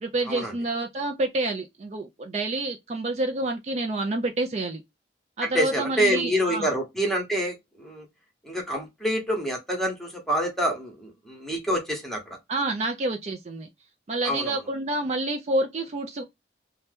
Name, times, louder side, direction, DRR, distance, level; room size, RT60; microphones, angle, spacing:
voice 1, 0.0-4.8 5.4-6.7 12.5-13.7 14.1-16.2, right 2 dB, 40° right, 0.4 m, -28 dB
voice 2, 5.4-8.0 8.4-12.4 14.2-14.6, equal, ahead, 0.9 m, -27 dB
2.8 x 2.1 x 3.3 m
head